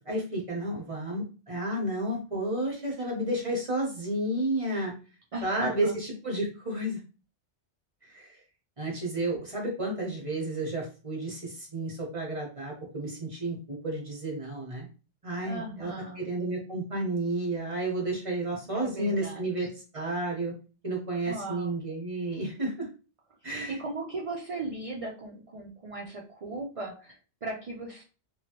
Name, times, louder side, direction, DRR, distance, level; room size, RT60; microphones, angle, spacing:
voice 1, 0.1-4.9 5.4-7.0 8.1-8.4 8.8-14.9 15.2-19.7 19.9-20.5 20.8-22.9 23.4-23.8, right 1 dB, 30° right, -2 dB, 0.9 m, -31 dB
voice 2, 5.3-5.9 15.5-16.2 18.7-19.7 21.3-21.7 23.7-28.0, right 2 dB, 50° right, -1 dB, 0.4 m, -38 dB
2.9 x 2.3 x 2.8 m, 0.34 s
omnidirectional pair, 1.2 m